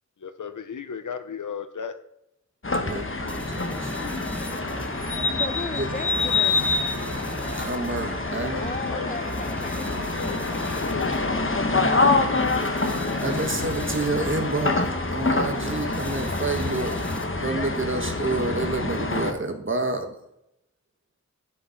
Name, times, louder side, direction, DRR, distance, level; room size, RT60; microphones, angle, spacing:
voice 1, 0.2-1.9 8.5-9.3 10.1-12.0, left 6 dB, 85° left, 10 dB, 0.8 m, -36 dB
sound 1, 2.6-19.3, left 3 dB, 45° left, 1.2 m, -26 dB
voice 2, 2.7-3.9 5.8-5.9 7.5-8.6 13.2-17.0 17.4-20.1, right 2 dB, 40° right, 4 dB, 1.4 m, -29 dB
sound 2, 3.3-17.5, equal, 5° left, 1.1 m, -37 dB
Trumpet, 4.0-13.0, left 1 dB, 70° left, 2.1 m, -43 dB
voice 3, 5.4-6.6 8.6-11.6, left 2 dB, 25° left, 11 dB, 0.8 m, -37 dB
10.5 x 5.3 x 5.9 m, 0.82 s
wide cardioid pair, 50°, 30 cm